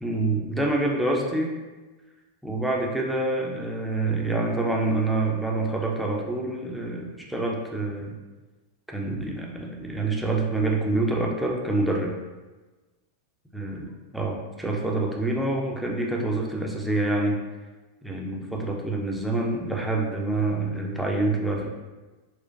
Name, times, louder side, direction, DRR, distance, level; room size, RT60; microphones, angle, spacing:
voice 1, 0.0-1.5 2.4-8.2 8.9-12.1 13.5-17.4 18.0-21.7, right 2 dB, ahead, -1 dB, 0.5 m, -26 dB
4.3 x 2.2 x 2.5 m, 1.2 s
figure-of-eight pair, 90°, 0 cm